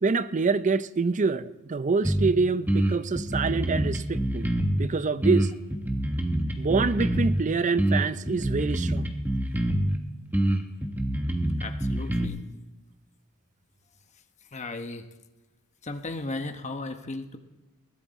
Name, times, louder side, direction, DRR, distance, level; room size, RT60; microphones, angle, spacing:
voice 1, 0.0-4.5 4.8-5.5 6.6-9.1, right 4 dB, 35° right, 15 dB, 0.5 m, -26 dB
sound 1, 2.0-2.3 2.7-4.9 5.2-7.4 7.8-10.0 10.3-12.3, right 1 dB, 10° right, 1.1 m, -26 dB
voice 2, 11.6-12.4 14.5-15.1 15.8-17.4, left 2 dB, 30° left, 7 dB, 1.0 m, -35 dB
21.5 x 16.5 x 4.1 m, 1.1 s
head